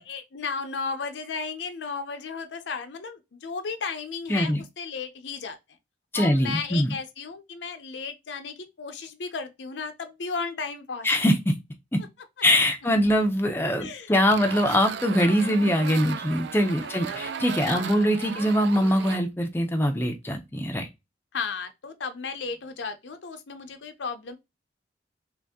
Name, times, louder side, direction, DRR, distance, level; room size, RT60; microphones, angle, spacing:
voice 1, 0.0-5.6 6.1-11.3 13.8-14.1 15.6-15.9 16.8-17.3 17.7-18.4 21.3-24.3, left 5 dB, 80° left, 0.6 m, -35 dB
voice 2, 4.3-4.6 6.1-6.9 11.0-11.5 11.9-12.0 12.4-20.9, equal, 10° left, 0.5 m, -23 dB
sound 1, 14.3-19.2, right 7 dB, 70° right, 0.3 m, -36 dB
3.0 x 2.6 x 3.5 m
head